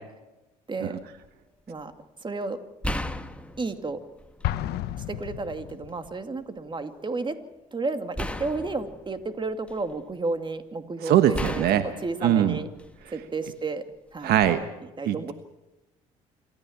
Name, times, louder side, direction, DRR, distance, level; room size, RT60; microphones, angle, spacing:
sound 1, 1.0-1.3 2.8-4.7 5.1-6.1 8.2-10.1 11.3-13.2 14.3-14.5, left 1 dB, 5° left, 1.7 m, -36 dB
voice 1, 2.2-2.6 3.6-4.0 5.1-7.4 7.7-11.6 12.0-12.7 13.1-13.8 14.1-14.3 15.0-15.3, right 3 dB, 25° right, 8 dB, 2.5 m, -32 dB
Explosion, 4.4-6.2, left 13 dB, 65° left, 1.1 m, -32 dB
voice 2, 11.0-11.8 12.2-12.6 14.2-14.6 15.0-15.3, right 11 dB, 65° right, 10 dB, 1.3 m, -21 dB
27.0 x 14.0 x 7.3 m, 1.0 s
hypercardioid pair, 65°, 18 cm